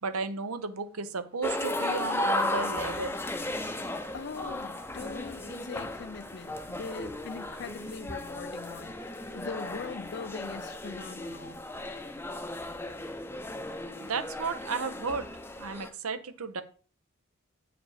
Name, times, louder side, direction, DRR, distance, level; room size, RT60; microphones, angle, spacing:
voice 1, 0.0-3.2 14.0-15.3 15.6-16.6, right 4 dB, 80° right, 0.8 m, -34 dB
sound 1, 1.4-15.9, left 1 dB, 10° left, 0.6 m, -35 dB
voice 2, 4.1-11.6, left 5 dB, 50° left, 0.4 m, -41 dB
8.5 x 5.0 x 4.8 m
head